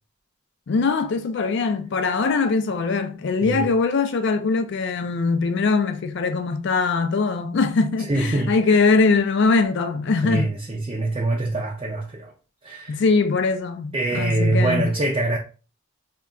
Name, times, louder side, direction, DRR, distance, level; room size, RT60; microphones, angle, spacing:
voice 1, 0.7-10.5 12.9-14.9, left 4 dB, 50° left, 0.3 m, -21 dB
voice 2, 3.4-3.7 8.1-8.8 10.2-12.3 12.6-13.0 13.9-15.4, right 2 dB, 25° right, 0.3 m, -24 dB
2.3 x 2.2 x 3.7 m
head